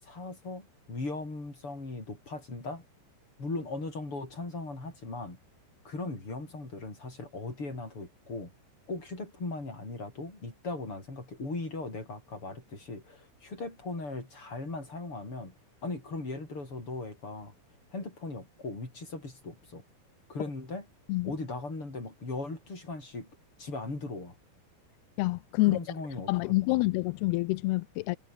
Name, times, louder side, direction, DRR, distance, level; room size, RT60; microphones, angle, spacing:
voice 1, 0.0-2.8 3.4-5.4 5.9-8.5 8.9-15.5 15.8-17.5 17.9-19.8 20.3-20.9 21.2-23.3 23.6-24.4 25.6-26.8, left 2 dB, 30° left, 8.7 m, -38 dB
voice 2, 25.2-25.8 26.3-28.2, left 21 dB, 85° left, 2.3 m, -27 dB
omnidirectional pair, 5.1 m